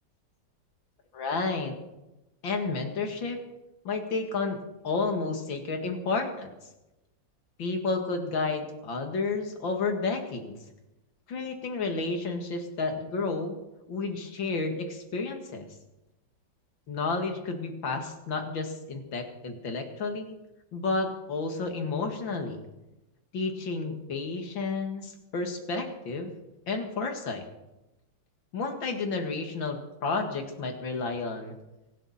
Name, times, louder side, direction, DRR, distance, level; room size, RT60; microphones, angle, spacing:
voice 1, 1.1-1.8 2.4-3.4 3.8-4.6 4.8-6.5 7.6-10.6 11.3-13.6 13.9-15.7 16.9-20.4 20.7-22.6 23.3-26.3 26.7-27.5 28.5-31.5, left 3 dB, 80° left, 4 dB, 2.7 m, -31 dB
24.5 x 11.5 x 4.2 m, 0.97 s
omnidirectional pair, 2.1 m